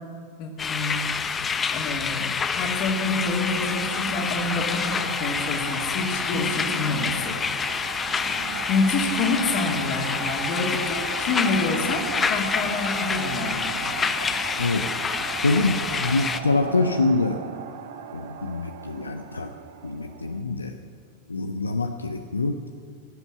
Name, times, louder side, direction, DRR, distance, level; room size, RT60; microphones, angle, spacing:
voice 1, 0.4-1.1 1.7-7.4 8.3-8.4 8.7-13.7, left 3 dB, 40° left, 1 dB, 2.7 m, -27 dB
sound 1, 0.6-16.4, left 5 dB, 20° left, 0.8 m, -28 dB
sound 2, 2.7-20.4, right 8 dB, 55° right, 1.0 m, -37 dB
voice 2, 14.6-14.9 15.4-17.4 18.1-19.5 19.8-20.8 21.3-22.6, left 3 dB, 80° left, 6 dB, 0.7 m, -25 dB
17.5 x 8.1 x 9.1 m, 2.3 s
figure-of-eight pair, 90°, 0 cm